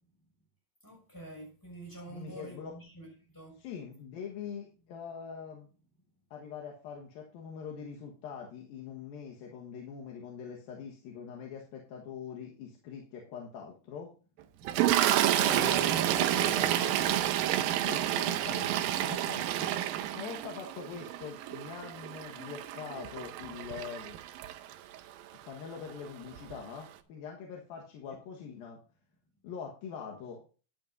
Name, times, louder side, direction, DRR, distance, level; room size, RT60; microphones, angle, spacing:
voice 1, 0.8-3.6 15.6-17.2 20.9-21.0 28.1-28.2, right 1 dB, 5° left, 5.9 m, -46 dB
voice 2, 2.1-2.7 3.6-5.7 6.3-14.1 15.4-16.9 17.8-19.7 20.1-24.2 25.5-28.8 29.4-30.5, left 7 dB, 80° left, 3.3 m, -43 dB
Toilet flush, 14.7-25.0 25.9-26.1 26.3-26.5, right 12 dB, 80° right, 2.5 m, -29 dB
14.0 x 10.0 x 2.7 m
omnidirectional pair, 4.1 m